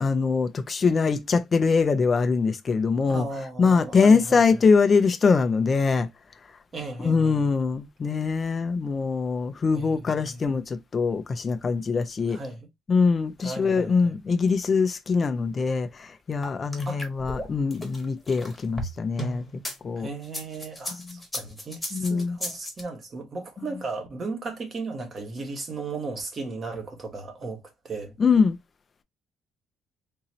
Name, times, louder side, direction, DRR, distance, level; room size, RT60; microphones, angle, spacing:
voice 1, 0.0-3.3 3.6-6.1 7.0-12.4 12.9-19.4 19.8-20.1 21.9-22.4 28.2-28.6, left 5 dB, 30° left, 0.4 m, -23 dB
voice 2, 3.1-4.6 6.7-7.5 9.7-10.6 12.3-12.7 13.4-14.1 16.8-17.0 20.0-28.1, right 3 dB, 30° right, 1.2 m, -36 dB
sound 1, 16.4-19.8 20.2-22.8, equal, 10° left, 1.2 m, -35 dB
3.8 x 2.7 x 3.0 m
cardioid pair, 140°, 0 cm